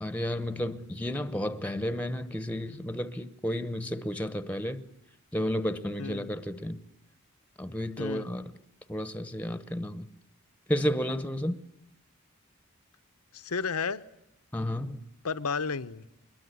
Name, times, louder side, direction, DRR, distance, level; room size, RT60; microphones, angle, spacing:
voice 1, 0.0-4.9 5.3-6.8 7.6-8.4 8.9-10.1 10.7-11.6 14.5-15.0, equal, 5° left, 0.9 m, -32 dB
voice 2, 6.0-6.4 8.0-8.3 13.3-14.0 15.2-16.0, left 5 dB, 90° left, 0.9 m, -32 dB
23.0 x 22.0 x 9.9 m
head